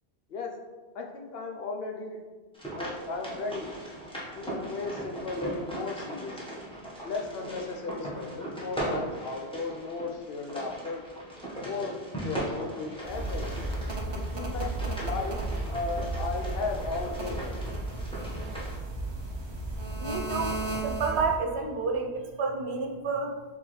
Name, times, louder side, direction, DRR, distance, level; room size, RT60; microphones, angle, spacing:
voice 1, 0.9-2.2 2.7-3.7 4.4-6.6 7.0-11.0 11.5-12.0 12.2-13.7 14.1-15.4 15.7-17.8, left 3 dB, 65° left, 2 dB, 0.8 m, -35 dB
sound 1, 2.5-18.8, right 1 dB, 5° left, 1.0 m, -39 dB
sound 2, 13.0-21.4, right 2 dB, 40° right, 0.4 m, -34 dB
voice 2, 20.0-20.6 20.8-23.3, right 4 dB, 75° right, 3 dB, 0.9 m, -30 dB
4.5 x 3.5 x 3.1 m, 1.3 s
omnidirectional pair, 1.1 m